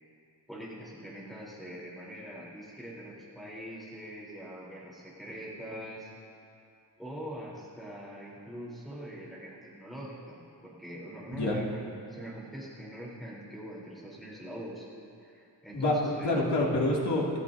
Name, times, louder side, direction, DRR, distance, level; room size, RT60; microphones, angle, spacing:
voice 1, 0.5-6.1 7.0-14.9 15.2-16.5, equal, ahead, -7 dB, 3.7 m, -43 dB
voice 2, 15.7-17.4, left 2 dB, 70° left, -4 dB, 2.6 m, -27 dB
28.0 x 13.5 x 2.7 m, 2.6 s
wide cardioid pair, 175°, 42 cm